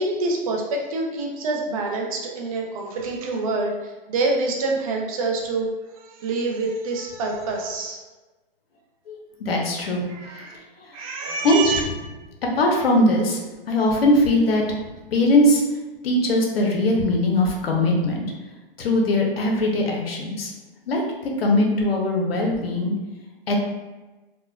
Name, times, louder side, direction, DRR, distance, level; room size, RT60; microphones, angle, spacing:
voice 1, 0.0-8.0 10.1-10.6 10.9-11.8, right 3 dB, 35° right, 0 dB, 0.5 m, -26 dB
voice 2, 9.4-10.0 11.4-11.7 12.5-13.4 13.7-14.8 15.1-15.6 16.0-18.2 18.8-20.5 20.9-22.9 23.5-23.6, left 1 dB, 80° left, 0 dB, 0.9 m, -20 dB
4.1 x 2.2 x 2.3 m, 1.2 s
hypercardioid pair, 145°, 29 cm